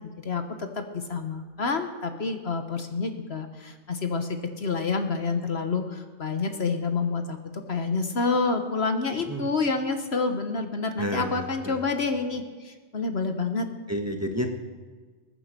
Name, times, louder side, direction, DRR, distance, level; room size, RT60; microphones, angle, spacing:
voice 1, 0.2-13.7, left 4 dB, 50° left, 7 dB, 1.3 m, -28 dB
voice 2, 11.0-11.9 13.9-14.5, equal, 10° right, 3 dB, 1.4 m, -31 dB
20.5 x 9.4 x 6.8 m, 1.4 s
omnidirectional pair, 1.4 m